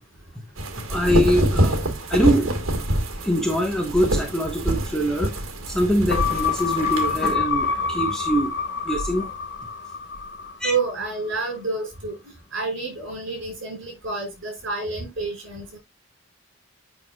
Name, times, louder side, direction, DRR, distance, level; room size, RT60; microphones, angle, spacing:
sound 1, 0.6-7.3, right 1 dB, 75° right, 1.7 m, -25 dB
voice 1, 0.9-2.5 3.2-5.3 5.7-8.5 8.8-9.3 10.6-10.7, equal, 5° left, 1.2 m, -23 dB
sound 2, 6.1-10.8 11.2-11.3, left 5 dB, 55° left, 1.1 m, -26 dB
voice 2, 10.6-12.2 12.5-15.8, right 4 dB, 60° right, 5.1 m, -29 dB
8.8 x 5.7 x 2.3 m
head